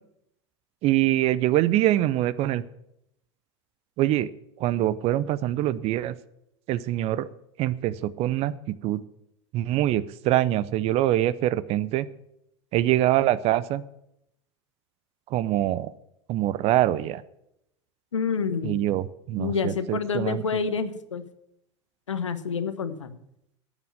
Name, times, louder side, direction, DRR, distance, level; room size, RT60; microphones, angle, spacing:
voice 1, 0.8-2.6 4.0-4.3 4.6-6.1 6.7-7.3 7.6-8.5 8.8-9.0 9.5-12.1 12.7-13.8 15.3-15.9 16.3-17.2 18.6-20.4, right 14 dB, 40° right, 17 dB, 0.6 m, -24 dB
voice 2, 18.1-18.9 19.4-21.2 22.1-23.2, left 5 dB, 80° left, 13 dB, 0.9 m, -28 dB
9.2 x 8.1 x 8.7 m, 0.80 s
figure-of-eight pair, 80°, 16 cm